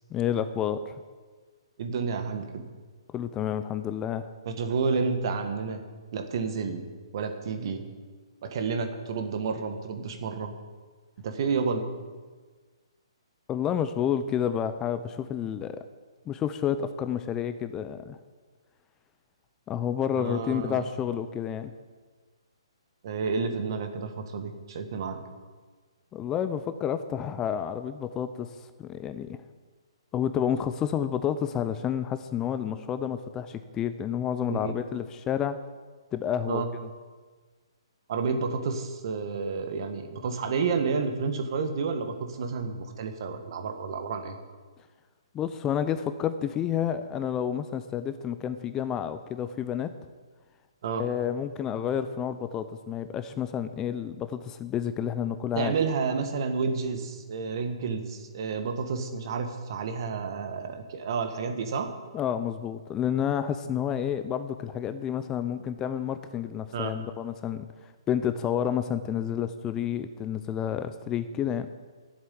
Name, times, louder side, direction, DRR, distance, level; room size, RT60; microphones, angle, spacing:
voice 1, 0.1-1.0 3.1-4.3 13.5-15.8 16.3-18.2 19.7-21.7 26.1-29.4 30.1-35.6 36.1-36.9 45.3-49.9 51.0-55.7 62.1-71.7, left 9 dB, 20° left, 11 dB, 0.5 m, -30 dB
voice 2, 1.8-2.6 4.4-5.8 6.1-6.8 7.1-7.8 8.4-10.5 11.2-11.8 20.1-20.8 23.0-25.2 34.5-34.7 36.5-36.7 38.1-44.3 50.8-51.1 55.5-61.9 66.7-66.9, right 5 dB, 50° right, 6 dB, 1.6 m, -30 dB
10.5 x 7.8 x 8.5 m, 1.4 s
hypercardioid pair, 140°, 3 cm